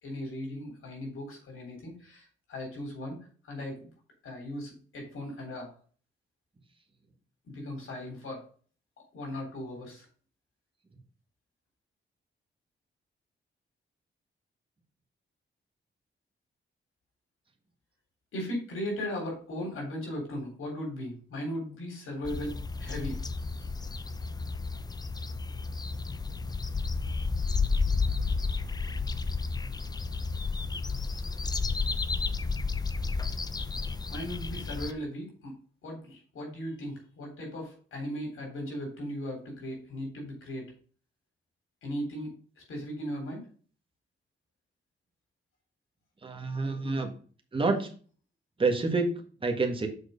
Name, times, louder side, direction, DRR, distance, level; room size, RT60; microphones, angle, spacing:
voice 1, 0.0-3.9 4.2-5.7 7.4-8.5 9.1-10.1 18.3-23.2 34.1-35.6 35.8-40.7 41.8-43.5 46.6-47.0, equal, 85° left, 0 dB, 3.5 m, -37 dB
sound 1, 22.2-34.9, left 4 dB, 20° left, 0.5 m, -31 dB
voice 2, 46.2-47.1 47.5-47.9 48.6-49.1 49.4-49.9, right 3 dB, 25° right, 2 dB, 1.6 m, -27 dB
6.5 x 4.7 x 5.2 m, 0.41 s
cardioid pair, 105°, 21 cm